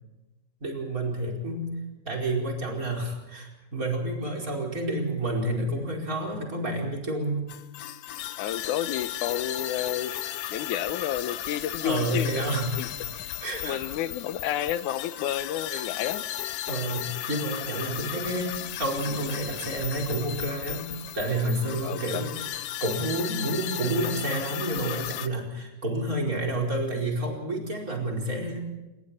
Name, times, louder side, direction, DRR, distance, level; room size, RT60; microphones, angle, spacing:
voice 1, 0.6-1.7 2.0-7.5 11.8-12.9 13.4-14.0 15.7-15.9 16.7-20.9 21.1-22.3 22.8-28.6, right 1 dB, 25° right, 0 dB, 5.1 m, -29 dB
sound 1, 7.5-25.3, left 12 dB, 70° left, 1.6 m, -35 dB
voice 2, 8.4-10.2 10.5-12.5 12.8-12.9 13.6-16.3 21.8-22.3, left 11 dB, 90° left, 13 dB, 2.4 m, -30 dB
27.5 x 21.5 x 4.4 m, 1.0 s
omnidirectional pair, 3.4 m